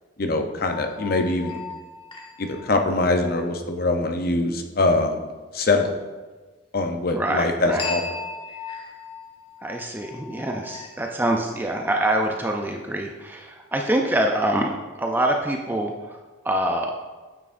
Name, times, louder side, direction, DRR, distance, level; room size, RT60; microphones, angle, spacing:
voice 1, 0.2-1.6 2.4-5.9 6.7-8.0, left 2 dB, 50° left, 5 dB, 0.6 m, -23 dB
sound 1, 0.7-3.5 7.8-11.4, left 4 dB, 25° left, 1.0 m, -37 dB
voice 2, 7.1-7.8 9.6-14.7 15.0-16.2 16.4-16.9, right 1 dB, 10° right, 2 dB, 0.4 m, -25 dB
9.0 x 6.0 x 2.5 m, 1.3 s
head